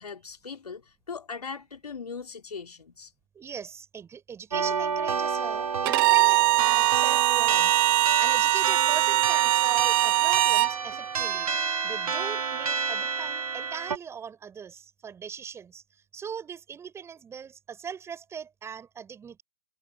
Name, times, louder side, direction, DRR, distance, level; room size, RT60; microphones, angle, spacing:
voice 1, 0.0-3.1, left 5 dB, 70° left, 3.3 m, -39 dB
voice 2, 3.3-11.5 11.8-15.8 16.1-19.4, right 7 dB, 15° right, 5.8 m, -40 dB
sound 1, 4.5-14.0, right 5 dB, 65° right, 3.4 m, -29 dB
Bowed string instrument, 5.8-10.7, right 22 dB, 35° right, 1.5 m, -22 dB
figure-of-eight pair, 120°, 20 cm